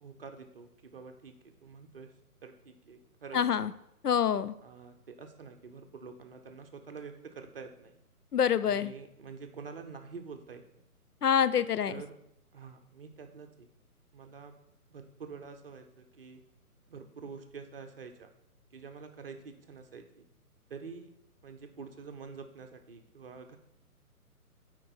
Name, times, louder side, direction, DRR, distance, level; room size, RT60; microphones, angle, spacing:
voice 1, 0.0-2.1 2.4-3.7 4.6-8.0 8.6-10.8 11.9-12.2 12.5-13.7 14.1-14.5 14.9-16.4 16.9-18.3 18.7-20.3 20.7-21.1 21.4-23.6, right 5 dB, 40° right, 6 dB, 0.8 m, -47 dB
voice 2, 3.3-3.7 4.0-4.5 8.3-8.9 11.2-12.0, left 8 dB, 85° left, 14 dB, 0.6 m, -26 dB
8.6 x 4.6 x 4.2 m, 0.79 s
figure-of-eight pair, 140°, 45 cm